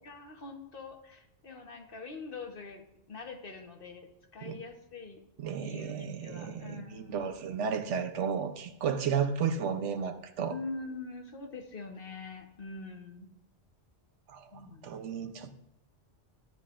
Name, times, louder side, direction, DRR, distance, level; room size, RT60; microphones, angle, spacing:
voice 1, 0.0-5.2 5.6-7.3 10.5-13.3 14.5-15.0 15.3-15.5, left 3 dB, 50° left, 1.3 m, -44 dB
voice 2, 5.4-10.6 14.3-15.5, right 7 dB, 85° right, 1.1 m, -33 dB
12.5 x 10.5 x 2.5 m
omnidirectional pair, 1.2 m